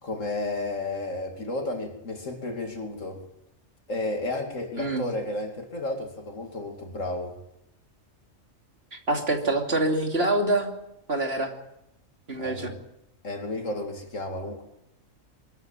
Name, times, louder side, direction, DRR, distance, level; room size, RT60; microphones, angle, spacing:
voice 1, 0.0-3.2 3.9-7.3 12.4-12.8 13.2-14.6, left 2 dB, 75° left, 3.1 m, -32 dB
voice 2, 8.9-10.7 11.1-11.5 12.3-12.7, right 2 dB, 50° right, 3.0 m, -25 dB
23.5 x 14.0 x 9.1 m
omnidirectional pair, 1.3 m